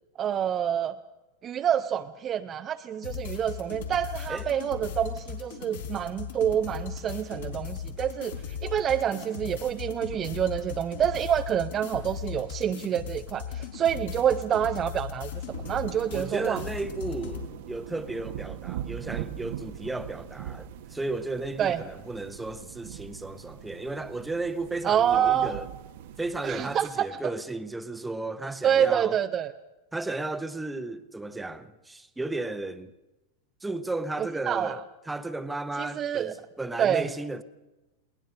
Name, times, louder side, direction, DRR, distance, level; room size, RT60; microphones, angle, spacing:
voice 1, 0.2-1.0 1.4-16.6 21.6-21.8 24.8-25.5 26.4-27.1 28.6-29.5 34.2-34.8 35.8-36.3 36.8-37.0, right 9 dB, 25° right, 0.6 m, -27 dB
sound 1, 3.0-17.5, left 7 dB, 65° left, 3.7 m, -38 dB
sound 2, 15.5-26.8, right 11 dB, 55° right, 0.9 m, -41 dB
voice 2, 16.1-25.7 26.2-29.2 29.9-32.9 33.6-34.8 35.1-37.4, right 2 dB, 5° right, 0.9 m, -34 dB
21.5 x 19.0 x 6.4 m
figure-of-eight pair, 90°, 0 cm